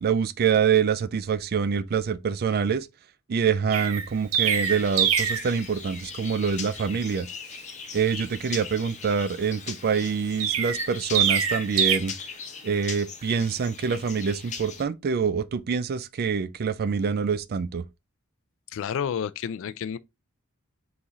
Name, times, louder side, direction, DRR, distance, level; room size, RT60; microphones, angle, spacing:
voice 1, 0.0-2.9 3.3-7.3 7.9-12.1 12.6-17.8, right 6 dB, 45° right, 0.4 m, -25 dB
Chirp tweet, 3.7-5.5 10.4-12.0, right 8 dB, 75° right, 0.7 m, -24 dB
sound 1, 4.4-14.8, left 6 dB, 35° left, 0.7 m, -40 dB
voice 2, 18.7-20.0, left 7 dB, 65° left, 0.3 m, -30 dB
3.9 x 3.0 x 3.5 m
head